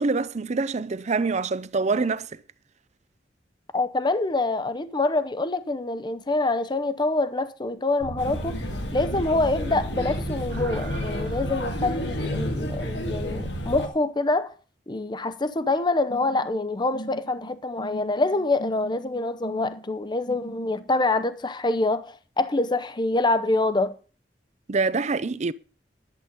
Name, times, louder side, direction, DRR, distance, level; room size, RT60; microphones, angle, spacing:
voice 1, 0.0-2.4 24.7-25.5, right 4 dB, 40° right, 0.6 m, -25 dB
voice 2, 3.7-8.6 8.9-14.5 14.9-24.0, left 2 dB, 25° left, 0.7 m, -25 dB
sound 1, 8.0-13.8, right 2 dB, 60° right, 0.9 m, -35 dB
Male speech man speaking / Child speech kid speaking / Chatter, 8.2-13.9, left 1 dB, 90° left, 2.0 m, -31 dB
sound 2, 16.1-20.9, right 1 dB, 60° left, 1.2 m, -41 dB
11.5 x 7.9 x 5.2 m
head